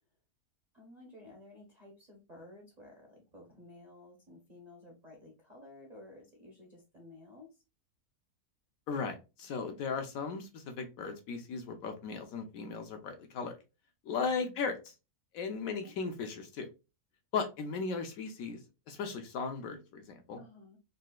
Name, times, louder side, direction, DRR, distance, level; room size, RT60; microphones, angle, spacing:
voice 1, 0.7-7.6 14.4-14.6 15.6-15.9 20.4-20.8, left 2 dB, 40° right, -2 dB, 0.5 m, -54 dB
voice 2, 8.9-13.5 14.1-14.8 15.3-16.7 17.3-18.6 18.9-20.4, left 5 dB, 70° left, 5 dB, 1.0 m, -36 dB
3.9 x 2.4 x 2.2 m, 0.28 s
omnidirectional pair, 1.7 m